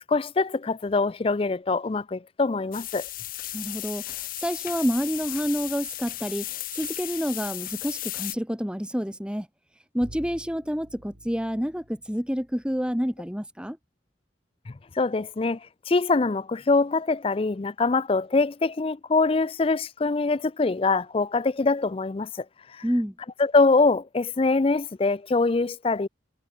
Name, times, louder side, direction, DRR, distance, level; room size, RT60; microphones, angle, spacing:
voice 1, 0.1-3.1 14.7-15.6 15.9-22.5 22.7-22.8 23.4-26.1, left 3 dB, 30° left, 0.4 m, -24 dB
sound 1, 2.7-8.4, left 15 dB, 50° left, 0.9 m, -35 dB
voice 2, 3.5-4.0 4.4-9.5 9.9-13.8 22.8-23.1, equal, 5° right, 2.5 m, -28 dB
Bowed string instrument, 10.0-13.1, right 1 dB, 85° right, 3.7 m, -49 dB
head